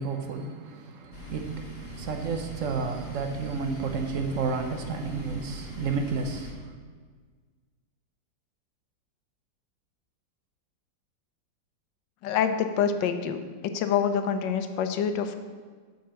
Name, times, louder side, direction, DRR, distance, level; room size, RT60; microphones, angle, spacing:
voice 1, 0.0-6.7, right 4 dB, 60° right, 0.8 m, -31 dB
sound 1, 1.1-6.5, equal, 35° left, 1.6 m, -41 dB
voice 2, 12.2-13.4 13.7-15.4, left 7 dB, 75° left, 1.3 m, -26 dB
7.2 x 5.6 x 6.1 m
omnidirectional pair, 2.1 m